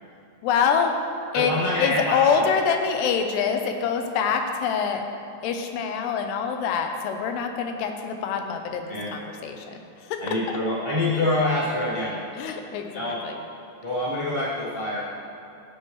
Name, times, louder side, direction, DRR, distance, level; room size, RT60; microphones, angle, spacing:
voice 1, 0.4-1.0 1.3-5.1 5.4-10.6 12.4-13.4, left 6 dB, 85° left, 5 dB, 2.8 m, -25 dB
voice 2, 1.3-2.4 8.9-9.1 10.2-12.2 12.9-13.2 13.8-15.1, left 1 dB, 35° right, -9 dB, 0.7 m, -26 dB
16.5 x 7.7 x 3.1 m, 2.8 s
omnidirectional pair, 4.8 m